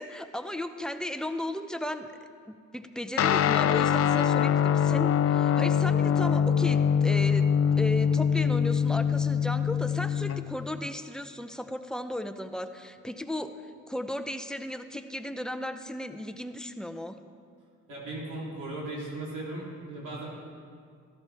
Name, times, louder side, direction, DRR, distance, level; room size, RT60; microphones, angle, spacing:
voice 1, 0.0-2.1 2.5-7.5 7.8-13.5 13.9-17.2, left 1 dB, ahead, 8 dB, 0.7 m, -35 dB
Guitar, 3.2-10.9, left 8 dB, 50° left, 0.4 m, -24 dB
voice 2, 17.9-20.3, right 2 dB, 80° right, -5 dB, 3.3 m, -37 dB
13.0 x 12.5 x 3.4 m, 2.2 s
cardioid pair, 60°, 31 cm